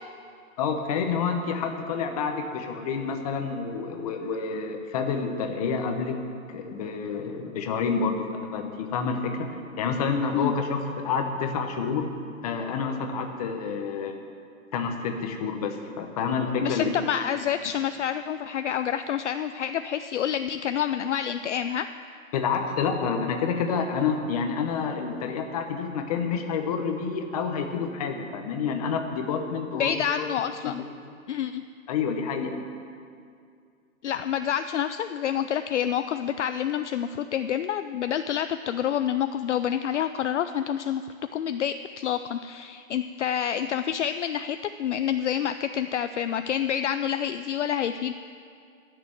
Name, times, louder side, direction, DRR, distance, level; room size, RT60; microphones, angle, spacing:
voice 1, 0.6-6.2 6.5-9.5 9.8-12.1 12.4-14.2 14.7-16.9 22.3-29.9 30.6-30.9 31.9-32.5, left 5 dB, 25° left, 4 dB, 1.0 m, -28 dB
voice 2, 16.6-21.9 29.7-30.8 31.3-31.6 34.0-41.0 41.3-48.1, left 9 dB, 60° left, 10 dB, 0.5 m, -28 dB
12.0 x 6.8 x 9.2 m, 2.3 s
hypercardioid pair, 160°, 42 cm